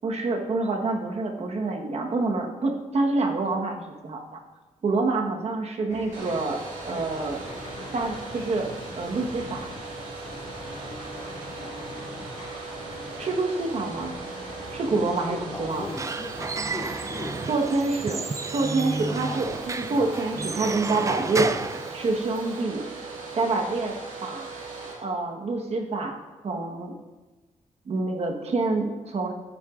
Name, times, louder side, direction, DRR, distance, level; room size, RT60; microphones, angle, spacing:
voice 1, 0.0-4.4 4.8-7.4 7.9-9.7 13.2-14.2 14.7-15.8 17.5-21.5 21.9-22.8 23.4-24.0 24.2-24.5 25.0-26.2 26.4-26.9 27.9-29.3, right 3 dB, 50° right, 2 dB, 1.3 m, -27 dB
sound 1, 5.9-21.2, left 2 dB, 60° left, 2.0 m, -43 dB
Domestic sounds home sounds, 6.1-24.9, right 4 dB, 85° right, 2.1 m, -39 dB
voice 2, 12.1-12.5 14.8-17.8, left 2 dB, 25° left, 5 dB, 0.7 m, -39 dB
Squeak / Wood, 15.7-22.6, right 4 dB, 25° right, 0.4 m, -32 dB
14.0 x 9.1 x 2.5 m, 1.2 s
cardioid pair, 115°, 14 cm